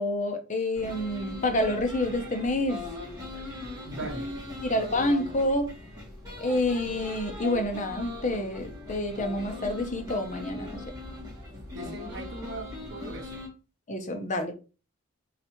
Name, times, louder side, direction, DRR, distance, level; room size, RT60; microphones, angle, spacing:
voice 1, 0.0-2.8 4.6-5.7 6.4-10.8 13.9-14.5, left 1 dB, 35° left, 0.6 m, -28 dB
sound 1, 0.7-13.5, left 2 dB, 15° right, 1.9 m, -40 dB
voice 2, 3.9-4.3 11.7-13.3, right 2 dB, 55° right, 1.0 m, -39 dB
4.0 x 3.3 x 3.0 m
head